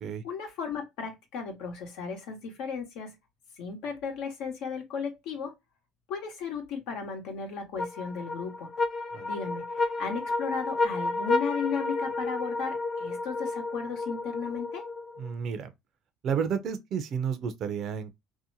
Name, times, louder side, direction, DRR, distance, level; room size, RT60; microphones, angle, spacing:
voice 1, 0.2-3.1 3.6-5.5 6.1-8.7 9.2-14.8, left 5 dB, 75° left, 1.0 m, -35 dB
sound 1, 7.8-15.3, left 3 dB, 35° left, 0.5 m, -31 dB
voice 2, 15.2-15.7 16.2-18.1, right 7 dB, 55° right, 0.5 m, -31 dB
2.7 x 2.1 x 2.6 m
supercardioid pair, 95°, 0 cm